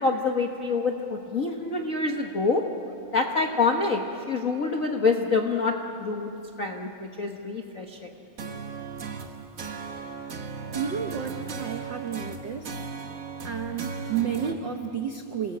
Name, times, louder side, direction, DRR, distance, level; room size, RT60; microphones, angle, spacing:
voice 1, 0.0-2.6 3.1-4.0 4.3-5.7 6.0-6.3 6.6-8.0, left 4 dB, 70° left, 3 dB, 0.7 m, -26 dB
sound 1, 8.4-14.5, right 4 dB, 45° right, 1.0 m, -36 dB
voice 2, 10.7-12.7 13.4-15.6, right 8 dB, 75° right, 6 dB, 1.0 m, -31 dB
28.0 x 20.0 x 8.7 m, 2.8 s
omnidirectional pair, 3.4 m